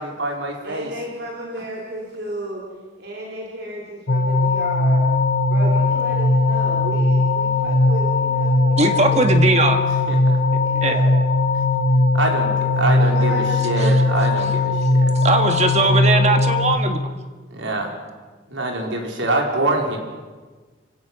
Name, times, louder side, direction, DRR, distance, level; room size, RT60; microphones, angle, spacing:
voice 1, 0.0-0.9 10.1-10.4 12.1-15.1 17.5-17.9 18.5-20.0, right 2 dB, 80° right, 1 dB, 4.5 m, -25 dB
voice 2, 0.6-2.6 3.0-5.0 5.5-9.6 10.6-11.1 12.9-14.1, right 1 dB, 55° right, -2 dB, 3.6 m, -33 dB
sound 1, 4.1-16.8, left 2 dB, 50° left, 1.2 m, -19 dB
voice 3, 8.8-9.8 10.8-10.9 13.8-13.9 15.2-17.0, right 2 dB, 35° right, 6 dB, 1.8 m, -19 dB
28.5 x 17.0 x 6.2 m, 1.3 s
head